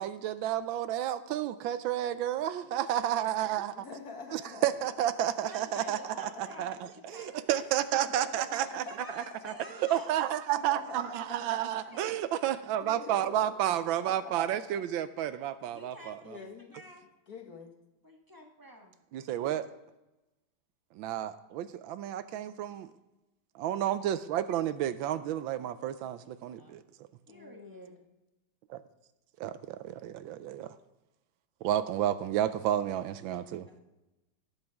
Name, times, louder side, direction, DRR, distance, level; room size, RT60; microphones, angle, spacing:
voice 1, 0.0-3.7 4.3-6.8 7.0-8.8 9.4-9.5 9.9-16.2 19.1-19.7 21.0-22.9 23.6-26.8 28.7-28.8 29.4-30.7 31.6-33.7, right 11 dB, 80° right, 13 dB, 1.3 m, -31 dB
voice 2, 3.8-5.0 5.8-6.6 7.0-7.1 8.0-9.1 9.3-9.6 10.5-12.0 12.8-13.5 14.0-14.6 16.2-16.7 17.3-17.7 22.2-22.4 27.3-28.0, left 4 dB, 50° left, 4 dB, 1.8 m, -46 dB
voice 3, 5.5-6.8 7.1-7.6 8.6-10.1 11.5-11.6 11.9-12.2 15.7-16.5 16.7-17.1 18.0-18.9 26.6-26.8 27.3-28.0 33.7-33.8, equal, 10° right, 0 dB, 1.2 m, -50 dB
17.5 x 7.9 x 3.5 m, 1.0 s
omnidirectional pair, 2.1 m